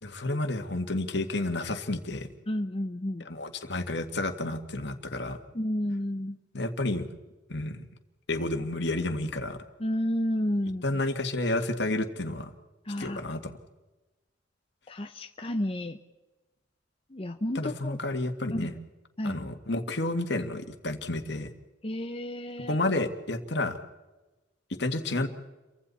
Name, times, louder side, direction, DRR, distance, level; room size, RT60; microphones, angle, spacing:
voice 1, 0.0-2.3 3.3-5.4 6.5-7.1 7.5-7.9 8.3-9.6 10.8-12.5 13.0-13.4 17.6-18.7 19.2-21.5 22.7-23.8 24.8-25.3, left 2 dB, 65° left, 6 dB, 2.0 m, -30 dB
voice 2, 2.5-3.3 5.5-6.4 9.8-10.8 12.8-13.2 14.9-16.0 17.1-18.0 18.5-18.7 19.2-19.5 21.8-22.8, left 1 dB, 30° left, 5 dB, 0.9 m, -31 dB
29.5 x 24.0 x 4.2 m, 1.1 s
head